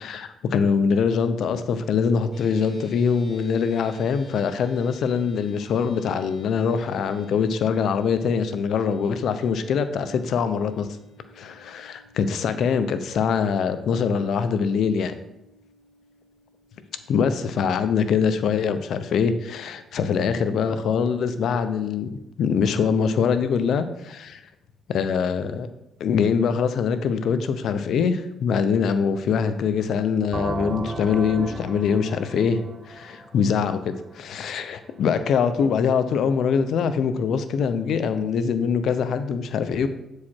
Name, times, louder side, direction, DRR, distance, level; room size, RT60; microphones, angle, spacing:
voice 1, 0.0-11.0 11.4-15.2 17.1-22.1 22.4-24.4 24.9-25.7 26.0-32.6 32.9-39.9, left 6 dB, 70° left, 10 dB, 0.6 m, -23 dB
sound 1, 2.3-20.9, left 1 dB, 45° left, 2.3 m, -55 dB
sound 2, 30.3-34.0, right 3 dB, 35° right, 0.6 m, -34 dB
8.4 x 4.8 x 4.3 m, 0.88 s
cardioid pair, 90°, 0 cm